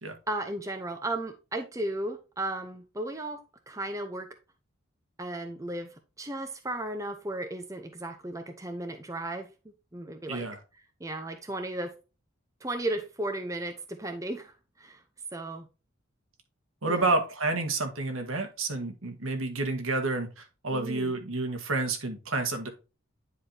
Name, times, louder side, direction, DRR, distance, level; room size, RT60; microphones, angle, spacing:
voice 1, 0.3-3.4 3.7-4.3 5.2-5.9 6.2-9.5 9.9-10.5 11.0-11.9 12.6-15.0 15.3-15.7 16.9-17.1 20.7-21.2, right 1 dB, 15° right, 0.7 m, -35 dB
voice 2, 10.3-10.6 16.8-22.7, right 3 dB, 80° right, 1.7 m, -29 dB
9.6 x 4.9 x 2.8 m
head